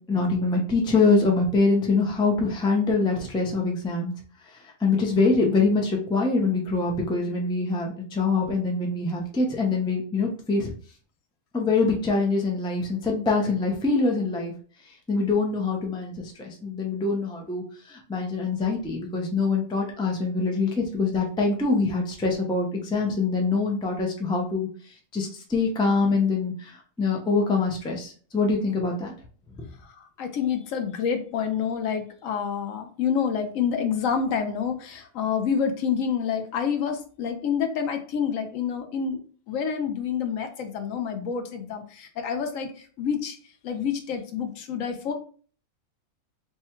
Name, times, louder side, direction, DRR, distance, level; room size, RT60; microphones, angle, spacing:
voice 1, 0.1-4.1 4.5-10.7 11.5-14.5 15.1-29.1 29.6-29.7, left 3 dB, 5° left, 0 dB, 0.4 m, -24 dB
voice 2, 29.8-39.2 39.5-43.4 43.6-45.1, left 7 dB, 70° left, 6 dB, 1.0 m, -28 dB
3.3 x 2.2 x 4.3 m, 0.42 s
omnidirectional pair, 1.5 m